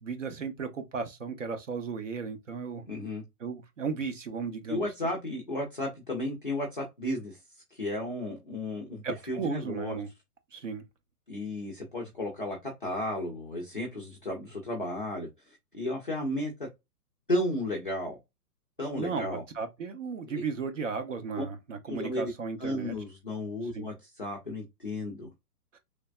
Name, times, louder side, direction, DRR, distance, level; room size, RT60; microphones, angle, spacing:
voice 1, 0.0-2.8 3.4-4.9 9.0-10.1 10.5-10.8 19.0-23.0 23.7-23.9 25.7-25.8, right 5 dB, 55° right, 0.5 m, -35 dB
voice 2, 2.9-3.2 4.7-7.4 7.7-10.0 11.3-16.7 17.3-18.2 18.8-19.4 20.3-20.4 21.9-22.3 22.6-25.3, left 1 dB, 35° left, 0.4 m, -33 dB
3.3 x 2.0 x 2.3 m
hypercardioid pair, 175°, 47 cm